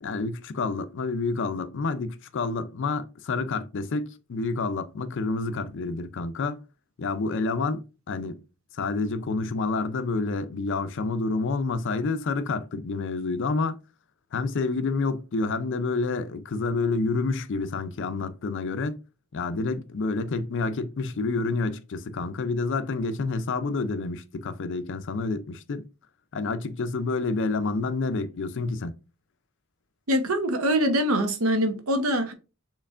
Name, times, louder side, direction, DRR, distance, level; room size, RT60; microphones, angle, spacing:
voice 1, 0.0-6.6 7.0-8.4 8.7-13.8 14.3-19.0 19.3-25.8 26.3-28.9, left 3 dB, 55° left, 0.5 m, -28 dB
voice 2, 30.1-32.3, equal, 70° right, 0.9 m, -24 dB
6.5 x 3.1 x 2.5 m
head